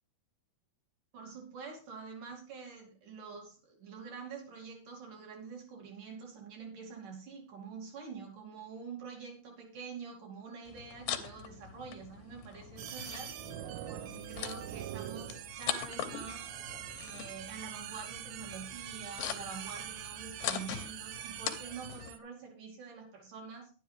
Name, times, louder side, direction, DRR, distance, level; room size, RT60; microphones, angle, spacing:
voice 1, 1.1-13.3 13.9-16.5 17.0-23.7, right 5 dB, 60° right, 1 dB, 4.1 m, -46 dB
sound 1, 10.7-22.1, left 10 dB, 75° left, 2.4 m, -42 dB
sound 2, 12.8-22.2, right 12 dB, 85° right, 2.6 m, -44 dB
11.0 x 9.9 x 3.4 m, 0.39 s
omnidirectional pair, 4.4 m